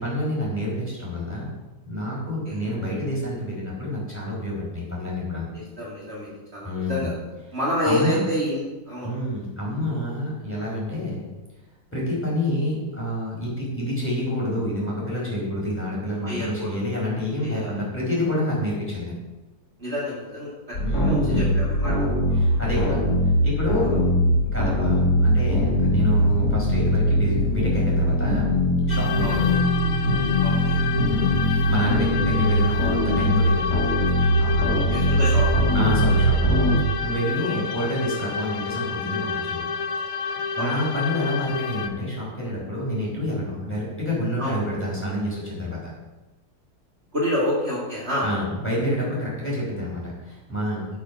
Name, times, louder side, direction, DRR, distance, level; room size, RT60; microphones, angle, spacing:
voice 1, 0.0-1.5 1.8-5.5 6.6-7.1 7.8-8.2 9.0-11.2 11.9-19.1 20.7-21.5 22.3-24.0 24.4-28.5 28.9-29.6 31.1-33.9 34.2-34.9 35.7-36.5 37.0-39.6 40.5-45.8 48.2-50.9, left 1 dB, 10° left, -5 dB, 4.7 m, -28 dB
voice 2, 5.5-7.1 7.5-9.1 16.2-16.8 17.4-17.8 19.8-20.5 21.0-21.9 22.3-22.6 23.9-24.0 29.2-29.4 30.4-30.8 34.9-35.8 37.4-37.5 40.6-40.7 41.1-41.2 44.4-44.6 47.1-48.3, left 1 dB, 40° right, -7 dB, 3.2 m, -28 dB
sound 1, 20.7-36.8, equal, 90° left, 3.3 m, -21 dB
sound 2, 28.9-41.9, left 6 dB, 65° left, 1.2 m, -30 dB
9.9 x 8.5 x 6.2 m, 1.2 s
omnidirectional pair, 1.6 m